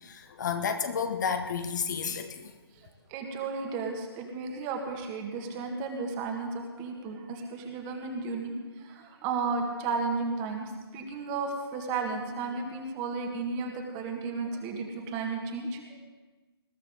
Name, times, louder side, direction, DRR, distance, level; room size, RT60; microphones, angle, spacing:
voice 1, 0.0-2.5, left 6 dB, 45° left, 8 dB, 1.0 m, -31 dB
voice 2, 3.1-16.0, right 4 dB, 20° right, 3 dB, 1.8 m, -33 dB
20.5 x 13.0 x 3.8 m, 1.2 s
figure-of-eight pair, 145°, 14 cm